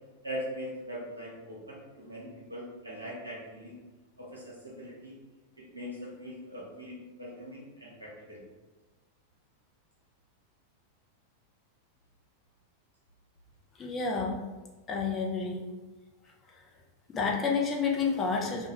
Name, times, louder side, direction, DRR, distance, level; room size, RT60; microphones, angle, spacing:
voice 1, 0.2-3.8 4.2-5.1 5.6-8.4, equal, 85° right, -5 dB, 0.8 m, -41 dB
voice 2, 13.8-14.4 14.9-15.6 17.1-18.7, left 5 dB, 25° left, -1 dB, 0.5 m, -29 dB
2.2 x 2.2 x 2.8 m, 1.2 s
figure-of-eight pair, 90°, 0 cm